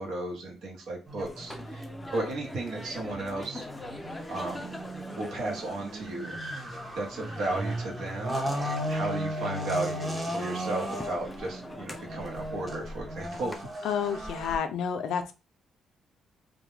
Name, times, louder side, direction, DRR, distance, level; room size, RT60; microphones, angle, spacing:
voice 1, 0.0-1.9 2.1-3.6 4.3-4.8 5.1-6.4 6.9-8.4 8.9-13.9, right 2 dB, 75° right, 0 dB, 0.9 m, -34 dB
sound 1, 1.1-14.6, equal, 20° right, 0.7 m, -36 dB
sound 2, 1.2-13.6, left 1 dB, 10° left, 0.4 m, -44 dB
voice 2, 13.8-15.3, left 7 dB, 80° left, 8 dB, 0.4 m, -30 dB
2.2 x 2.1 x 3.1 m, 0.30 s
cardioid pair, 90°, 0 cm